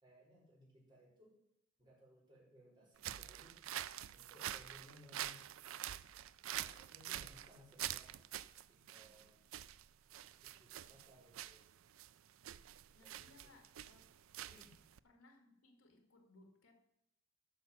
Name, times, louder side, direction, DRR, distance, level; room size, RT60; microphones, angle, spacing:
voice 1, 0.0-1.4 1.8-3.7 4.1-5.5 6.5-8.2 8.7-9.4 10.3-11.7 13.0-13.6 14.5-14.7, equal, 20° right, -4 dB, 4.5 m, -63 dB
sound 1, 3.0-15.0, right 12 dB, 75° right, 0.4 m, -47 dB
voice 2, 12.9-14.1 15.0-16.7, left 2 dB, 80° left, 4 dB, 2.0 m, -65 dB
12.5 x 5.8 x 7.2 m, 0.82 s
head